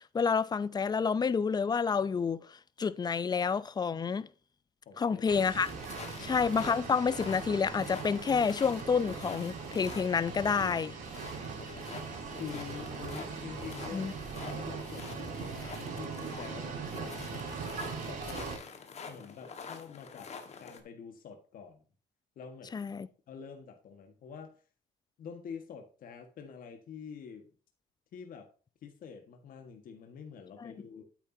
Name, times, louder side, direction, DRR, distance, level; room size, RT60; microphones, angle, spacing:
voice 1, 0.0-4.3 5.0-5.7 6.2-11.0 13.9-14.1 22.7-23.1 30.6-30.7, left 6 dB, 25° left, 0.5 m, -29 dB
voice 2, 4.8-5.3 6.0-6.4 11.7-11.9 12.4-17.4 18.1-18.5 19.1-20.3 20.6-21.8 22.3-22.9 23.3-24.6 25.2-27.5 28.1-28.5 28.8-31.0, left 6 dB, 55° left, 1.6 m, -46 dB
sound 1, 5.2-18.6, right 5 dB, 50° right, 4.9 m, -40 dB
sound 2, 5.6-20.8, left 5 dB, 40° left, 1.6 m, -47 dB
8.9 x 8.3 x 2.8 m
cardioid pair, 110°, 17 cm